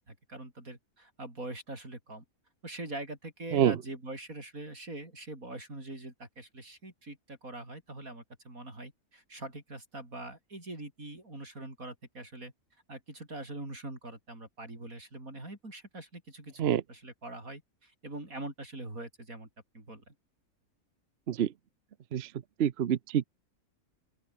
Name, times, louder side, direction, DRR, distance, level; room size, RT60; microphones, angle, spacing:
voice 1, 0.0-2.2 2.6-12.5 12.9-16.6 16.9-19.5 19.7-20.1, right 2 dB, 70° right, 7.1 m, -43 dB
voice 2, 22.6-23.3, right 9 dB, 50° right, 0.9 m, -26 dB
open air
omnidirectional pair, 1.5 m